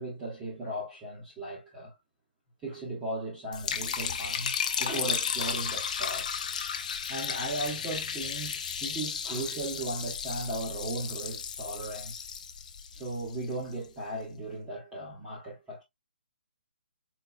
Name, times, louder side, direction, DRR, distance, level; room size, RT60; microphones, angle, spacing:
voice 1, 0.0-1.9 2.6-6.3 7.1-12.2 12.9-15.8, right 2 dB, 10° right, 1.2 m, -37 dB
Liquid, 3.5-13.7, left 7 dB, 45° left, 0.6 m, -34 dB
4.2 x 3.9 x 2.2 m
hypercardioid pair, 170°, 6 cm